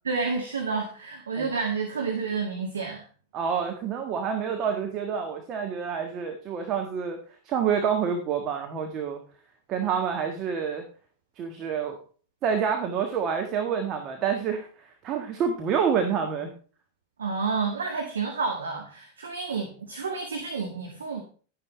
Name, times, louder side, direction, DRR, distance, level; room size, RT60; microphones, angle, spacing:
voice 1, 0.0-3.1 17.2-21.2, right 4 dB, 70° right, 2 dB, 1.8 m, -30 dB
voice 2, 3.3-7.2 7.4-9.2 9.7-10.8 11.4-12.0 12.4-16.5, right 7 dB, 35° right, 4 dB, 1.5 m, -28 dB
12.0 x 10.0 x 3.3 m, 0.41 s
figure-of-eight pair, 90°, 0 cm